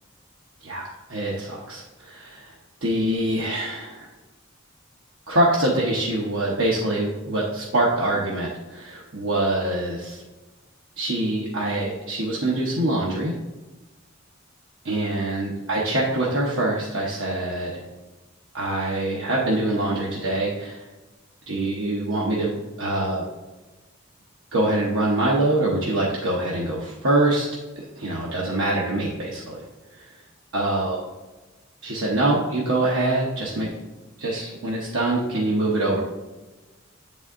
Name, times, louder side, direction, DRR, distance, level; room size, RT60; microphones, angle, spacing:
voice 1, 0.6-4.1 5.3-10.2 11.0-13.3 14.8-17.8 18.5-20.9 21.5-23.3 24.5-27.5 27.8-30.2 30.5-31.0 31.8-33.7 34.2-36.0, right 1 dB, 70° right, -4 dB, 1.0 m, -24 dB
8.0 x 4.1 x 3.7 m, 1.2 s
head